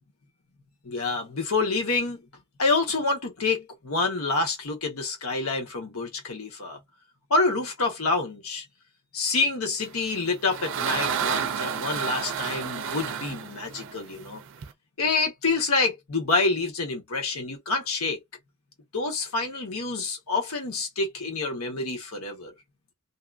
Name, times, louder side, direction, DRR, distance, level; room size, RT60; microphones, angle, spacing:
voice 1, 0.8-2.2 2.6-6.8 7.3-8.6 9.1-14.4 15.0-18.2 18.9-22.5, left 3 dB, 75° left, 1.1 m, -27 dB
sound 1, 10.0-14.7, right 7 dB, 60° right, 0.5 m, -30 dB
2.7 x 2.4 x 2.4 m
head